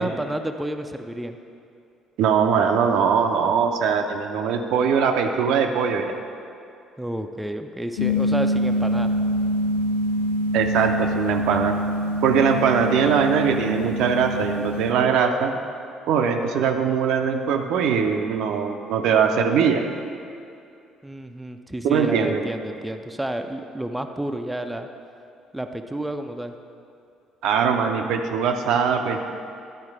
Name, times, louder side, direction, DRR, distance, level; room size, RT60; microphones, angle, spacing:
voice 1, 0.0-1.4 7.0-9.1 21.0-24.9 25.5-26.5, right 1 dB, 5° right, 5 dB, 0.4 m, -30 dB
voice 2, 2.2-6.1 10.5-11.7 12.2-15.5 16.1-19.8 21.8-22.4 27.4-29.2, right 6 dB, 60° right, 5 dB, 0.5 m, -21 dB
sound 1, 8.0-14.9, equal, 80° left, 0.5 m, -25 dB
11.5 x 4.3 x 4.8 m, 2.5 s
figure-of-eight pair, 50°, 0 cm